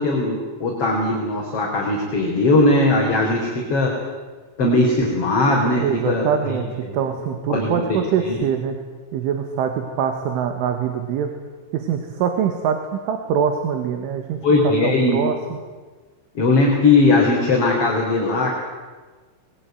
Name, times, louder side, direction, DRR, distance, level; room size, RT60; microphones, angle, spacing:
voice 1, 0.0-3.9 4.6-6.6 6.8-7.0 7.5-8.0 8.2-8.4 14.4-15.2 16.3-18.5, left 2 dB, 30° left, -2 dB, 4.5 m, -19 dB
voice 2, 5.8-8.8 9.1-11.3 11.7-14.4 14.8-15.3, right 8 dB, 70° right, 6 dB, 4.2 m, -23 dB
26.5 x 22.0 x 9.4 m, 1.4 s
omnidirectional pair, 5.9 m